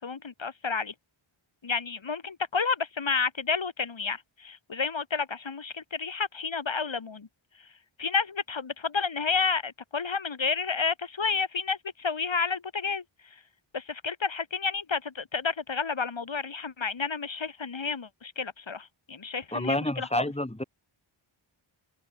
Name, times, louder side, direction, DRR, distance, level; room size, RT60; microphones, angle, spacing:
voice 1, 0.0-0.9 1.6-7.3 8.0-13.0 13.7-20.3, left 5 dB, 65° left, 4.7 m, -30 dB
voice 2, 19.5-20.6, left 1 dB, 10° left, 6.0 m, -29 dB
wide cardioid pair, 95°, 50 cm